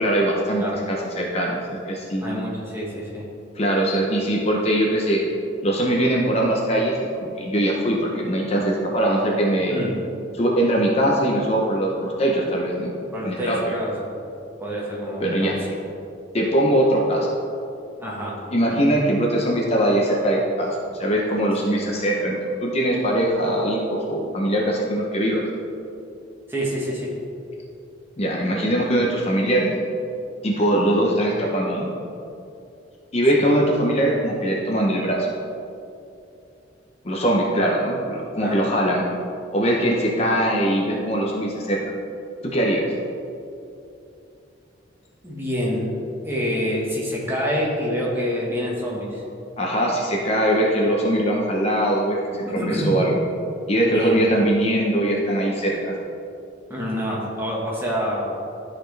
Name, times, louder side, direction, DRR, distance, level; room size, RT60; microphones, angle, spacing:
voice 1, 0.0-2.4 3.5-5.2 5.6-9.8 10.4-13.0 13.2-13.7 15.2-15.6 16.3-17.3 18.5-25.4 28.2-29.7 30.4-31.9 33.1-35.3 37.0-39.0 39.5-41.8 42.4-42.8 49.6-53.2 53.7-55.9, right 1 dB, 30° left, -2 dB, 0.8 m, -21 dB
voice 2, 2.2-3.3 9.7-9.9 13.1-14.2 14.6-15.7 18.0-18.4 21.6-21.8 26.5-27.1 33.3-33.5 38.4-38.6 45.2-45.9 46.2-49.2 52.4-53.0 53.8-54.2 56.7-58.3, equal, 10° right, -5 dB, 1.4 m, -27 dB
12.5 x 4.3 x 3.2 m, 2.6 s
head